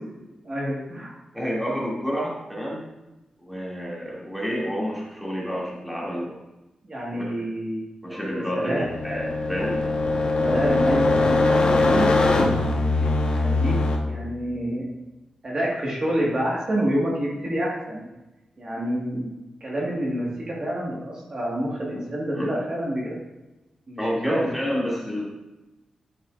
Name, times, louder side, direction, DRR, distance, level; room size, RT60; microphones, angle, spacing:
voice 1, 0.4-1.1 6.9-7.8 8.3-8.8 10.4-12.2 12.9-13.1 13.4-13.7 14.1-14.9 15.4-18.1 18.6-19.3 19.6-23.1 23.9-24.5, right 1 dB, 40° right, -5 dB, 1.7 m, -27 dB
voice 2, 1.3-2.8 3.4-6.4 7.1-7.2 8.0-9.8 22.3-22.5 24.0-25.2, equal, 5° right, -6 dB, 2.5 m, -29 dB
sound 1, 8.9-14.0, left 2 dB, 55° left, 1.2 m, -21 dB
11.0 x 5.5 x 2.5 m, 1.0 s
wide cardioid pair, 115°, 2 cm